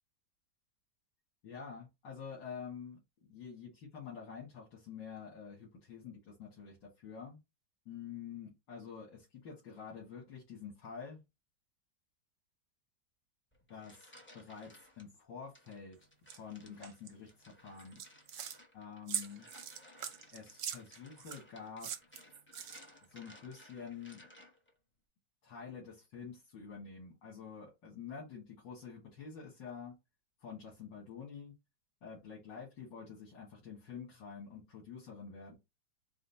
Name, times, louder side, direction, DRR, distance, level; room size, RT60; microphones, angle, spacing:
voice 1, 1.4-3.0 3.3-7.4 7.9-11.2 13.7-16.0 16.3-18.0 18.7-19.5 20.3-21.9 23.1-24.2 25.4-30.0 30.4-31.5 32.0-35.5, left 6 dB, 85° left, -5 dB, 2.3 m, -48 dB
sound 1, 13.5-15.1 15.5-24.7, equal, 15° left, 0.4 m, -59 dB
sound 2, 16.3-16.4 16.8-17.1 17.8-18.6 19.1-21.4 21.8-23.0, right 9 dB, 65° right, 0.8 m, -41 dB
5.0 x 2.1 x 4.1 m, 0.23 s
omnidirectional pair, 1.9 m